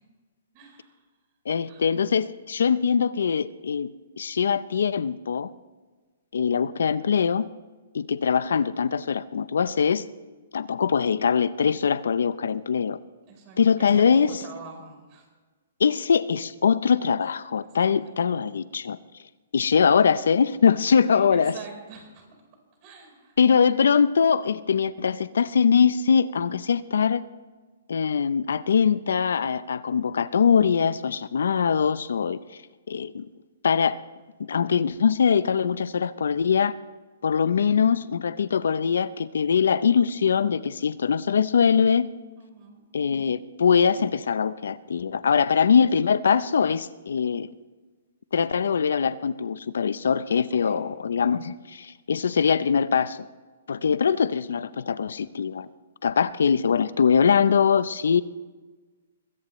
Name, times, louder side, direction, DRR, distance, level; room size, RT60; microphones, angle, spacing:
voice 1, 0.5-1.0 1.6-1.9 10.8-11.0 13.3-15.3 17.8-18.4 21.0-22.3 22.8-23.4 42.4-42.8 50.6-50.9 52.1-52.4 53.8-54.1, right 5 dB, 35° right, 2 dB, 4.3 m, -45 dB
voice 2, 1.5-3.9 4.2-5.5 6.3-7.5 7.9-10.0 10.5-13.0 13.6-14.3 15.8-19.0 19.5-21.6 23.4-27.2 27.9-32.4 32.9-33.3 33.6-34.0 34.5-36.7 37.2-42.1 42.9-47.5 48.3-53.2 53.7-55.7 56.0-58.2, left 6 dB, 80° left, 16 dB, 0.6 m, -22 dB
22.0 x 16.5 x 3.2 m, 1.3 s
hypercardioid pair, 155°, 0 cm